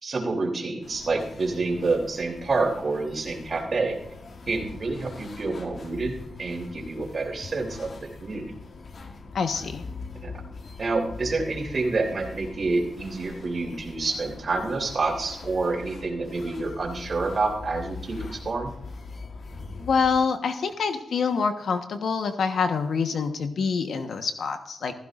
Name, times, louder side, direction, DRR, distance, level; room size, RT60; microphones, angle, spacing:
voice 1, 0.0-4.0 4.5-8.5 10.2-10.3 10.8-18.7, right 3 dB, 50° right, 2 dB, 3.2 m, -28 dB
sound 1, 0.8-20.2, left 4 dB, 60° left, 1.3 m, -42 dB
voice 2, 9.3-9.8 19.8-25.0, left 5 dB, 75° left, 7 dB, 1.2 m, -26 dB
15.5 x 15.0 x 2.5 m, 0.77 s
cardioid pair, 75°, 0 cm